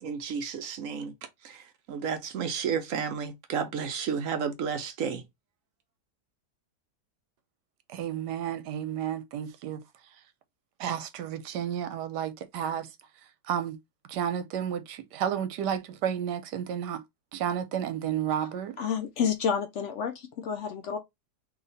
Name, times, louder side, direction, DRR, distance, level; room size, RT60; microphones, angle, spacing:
voice 1, 0.0-1.1 1.4-1.6 1.9-5.2, right 6 dB, 65° right, 0.8 m, -32 dB
voice 2, 7.9-9.8 10.8-12.9 13.5-13.8 14.1-17.0 17.3-18.8, right 9 dB, 85° right, 1.2 m, -31 dB
voice 3, 18.8-21.0, left 7 dB, 75° left, 0.6 m, -29 dB
3.0 x 2.8 x 3.8 m
omnidirectional pair, 1.8 m